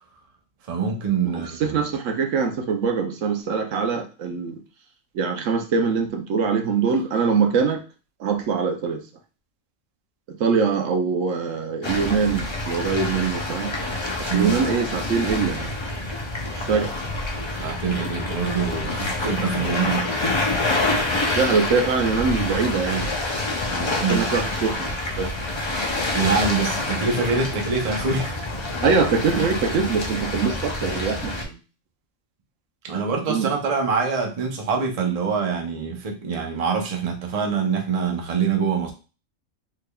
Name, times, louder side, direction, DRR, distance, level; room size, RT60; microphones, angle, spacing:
voice 1, 0.7-1.8 14.3-14.6 17.5-20.3 24.0-24.2 26.1-28.3 32.8-38.9, right 5 dB, 40° right, 2 dB, 0.6 m, -25 dB
voice 2, 1.6-4.5 5.1-7.8 8.2-9.0 10.4-13.7 14.2-15.7 16.5-16.9 21.3-23.1 23.7-24.9 25.2-25.3 28.8-31.6 32.9-33.0 33.3-33.5, right 5 dB, 75° right, 4 dB, 1.0 m, -23 dB
sound 1, 11.8-31.4, left 2 dB, 50° left, 0.3 m, -27 dB
3.7 x 3.3 x 2.2 m, 0.33 s
omnidirectional pair, 1.3 m